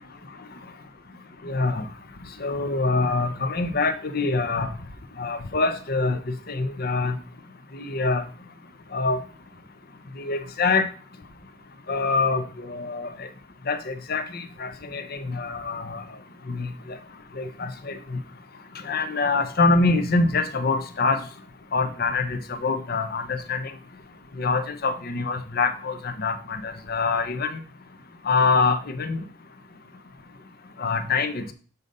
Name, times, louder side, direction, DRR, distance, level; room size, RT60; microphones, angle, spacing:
voice 1, 1.4-1.9 2.4-4.7 5.2-6.2 6.5-7.2 7.7-8.2 8.9-9.2 10.2-10.9 11.9-13.3 13.7-16.0 16.5-17.0 17.4-18.2 18.8-21.2 21.7-23.7 24.4-27.6 28.2-29.2 30.8-31.5, left 3 dB, 50° left, 9 dB, 0.8 m, -25 dB
6.9 x 4.0 x 5.4 m, 0.39 s
head